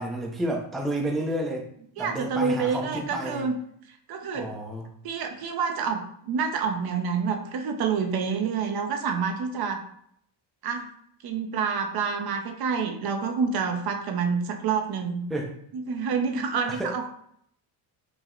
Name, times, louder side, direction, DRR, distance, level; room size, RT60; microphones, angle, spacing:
voice 1, 0.0-1.7 2.0-3.5 4.3-4.8 15.3-15.5 16.7-16.9, right 1 dB, ahead, 0 dB, 0.5 m, -30 dB
voice 2, 2.0-3.6 3.9-4.5 5.0-9.8 10.6-10.9 11.2-15.3 15.7-17.1, right 5 dB, 55° right, 5 dB, 0.6 m, -28 dB
4.7 x 2.0 x 3.7 m, 0.68 s
cardioid pair, 120°, 45 cm